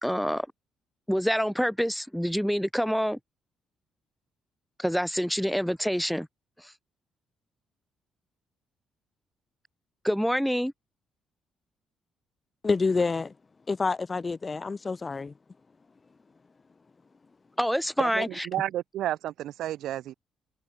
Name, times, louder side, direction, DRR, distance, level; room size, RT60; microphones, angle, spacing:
voice 1, 0.0-0.5 1.1-3.2 4.8-6.3 6.6-6.7 10.0-10.7 17.6-18.5, equal, ahead, 1.8 m, -26 dB
voice 2, 12.6-13.3 13.7-15.3, left 4 dB, 30° left, 0.4 m, -27 dB
voice 3, 18.0-20.1, right 13 dB, 80° right, 0.8 m, -31 dB
cardioid pair, 90°, 0 cm